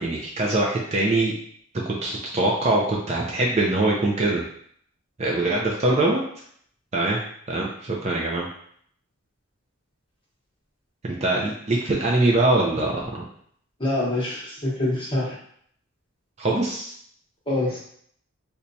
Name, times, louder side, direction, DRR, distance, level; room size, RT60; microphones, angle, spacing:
voice 1, 0.0-1.3 1.9-2.8 3.1-4.4 5.2-6.2 6.9-7.2 7.5-8.5 11.2-13.2 16.4-16.9, right 2 dB, 30° right, -2 dB, 0.4 m, -23 dB
voice 2, 13.8-15.3 17.5-17.8, left 1 dB, 25° left, -5 dB, 0.9 m, -25 dB
4.2 x 2.2 x 2.6 m, 0.63 s
head